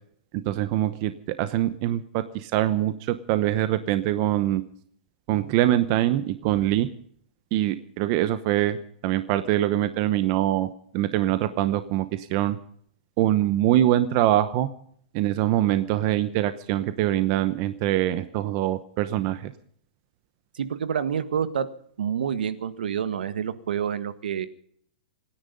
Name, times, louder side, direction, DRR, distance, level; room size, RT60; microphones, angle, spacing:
voice 1, 0.5-1.1 1.4-4.6 5.3-6.9 7.5-8.8 9.0-10.7 10.9-12.6 13.2-14.7 15.1-19.5, right 13 dB, 35° right, 12 dB, 0.9 m, -23 dB
voice 2, 20.5-21.7 22.0-24.5, right 8 dB, 85° right, 12 dB, 1.6 m, -28 dB
25.5 x 10.5 x 5.4 m, 0.62 s
supercardioid pair, 165°, 5 cm